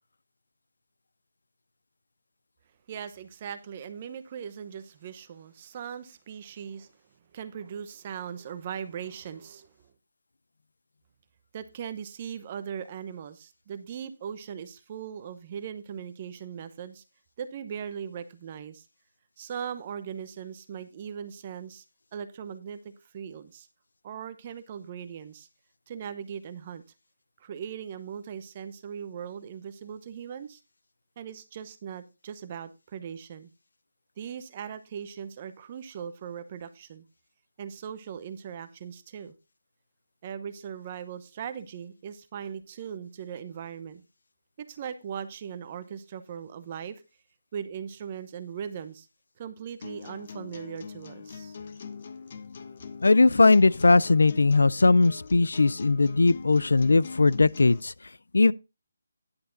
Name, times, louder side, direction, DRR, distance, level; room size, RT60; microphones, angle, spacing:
voice 1, 2.9-6.9 7.3-9.9 11.5-17.0 17.4-18.9 19.4-21.8 22.1-23.7 24.0-25.5 25.9-26.8 27.4-30.6 31.2-33.5 34.2-37.0 37.6-39.3 40.2-44.0 44.6-47.0 47.5-49.1 49.4-51.6, right 8 dB, 25° right, 0.8 m, -39 dB
sound 1, 49.8-57.8, left 5 dB, 40° left, 0.8 m, -42 dB
voice 2, 53.0-57.9 58.3-58.5, left 3 dB, 85° left, 0.4 m, -19 dB
10.5 x 6.7 x 3.9 m
hypercardioid pair, 170°, 0 cm